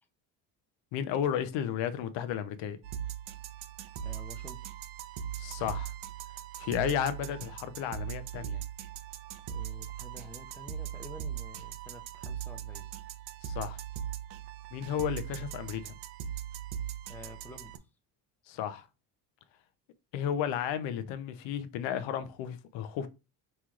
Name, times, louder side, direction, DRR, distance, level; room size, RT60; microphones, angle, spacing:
voice 1, 0.9-2.8 5.4-5.9 6.6-8.6 13.4-13.8 14.7-16.0 18.5-18.9 20.1-23.1, left 9 dB, 80° left, 0.8 m, -33 dB
sound 1, 2.8-17.8, right 10 dB, 75° right, 0.7 m, -40 dB
voice 2, 4.0-4.7 9.5-12.9 17.1-17.8, left 2 dB, 5° left, 0.5 m, -49 dB
5.4 x 3.1 x 2.4 m
cardioid pair, 115°, 43 cm